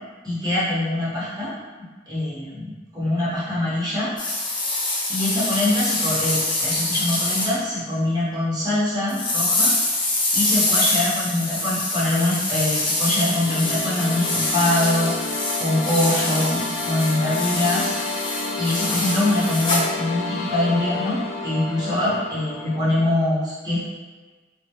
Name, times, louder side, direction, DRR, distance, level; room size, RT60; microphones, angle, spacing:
voice 1, 0.2-1.5 2.1-4.1 5.1-9.7 10.3-17.9 18.6-23.8, left 1 dB, 20° right, -10 dB, 0.8 m, -23 dB
sound 1, 4.2-7.5 9.1-19.9, left 2 dB, 25° left, 0.4 m, -25 dB
sound 2, 12.9-23.0, left 3 dB, 80° left, 0.4 m, -30 dB
2.2 x 2.0 x 2.7 m, 1.3 s
head